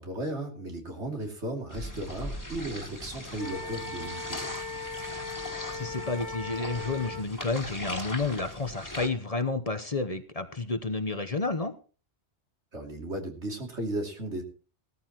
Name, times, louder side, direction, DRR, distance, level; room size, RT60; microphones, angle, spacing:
voice 1, 0.0-4.5 12.7-14.4, right 1 dB, 80° right, 3 dB, 3.1 m, -35 dB
sound 1, 1.7-9.1, left 1 dB, 15° left, 2.1 m, -40 dB
Wind instrument woodwind instrument, 3.4-7.3, left 3 dB, 55° left, 2.2 m, -38 dB
voice 2, 5.7-11.7, left 3 dB, 35° left, 9 dB, 1.0 m, -30 dB
17.5 x 13.5 x 3.0 m, 0.37 s
omnidirectional pair, 1.2 m